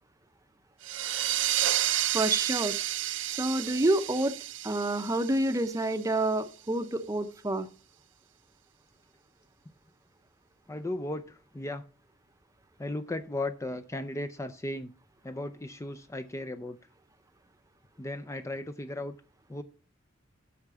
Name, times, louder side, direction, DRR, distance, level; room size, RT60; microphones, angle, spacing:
sound 1, 0.8-6.1, right 13 dB, 75° right, 0.6 m, -31 dB
voice 1, 2.1-2.8 3.2-4.3 4.6-7.7, right 1 dB, 15° right, 0.7 m, -28 dB
voice 2, 10.7-11.8 12.8-14.9 15.2-16.8 18.0-19.1 19.5-19.6, left 1 dB, 15° left, 0.5 m, -36 dB
8.3 x 5.9 x 6.8 m
head